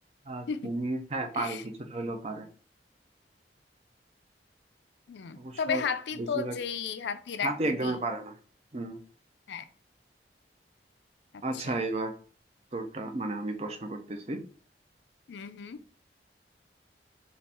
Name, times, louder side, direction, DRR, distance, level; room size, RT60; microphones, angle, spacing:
voice 1, 0.3-2.5 5.4-5.9 6.2-6.6 7.4-8.3 8.7-9.0 11.4-12.1 12.7-14.4, right 2 dB, 35° right, 0.5 m, -33 dB
voice 2, 5.1-8.0 9.5-9.7 11.5-11.8 15.3-15.8, left 6 dB, 80° left, 0.4 m, -34 dB
4.2 x 2.5 x 3.4 m
head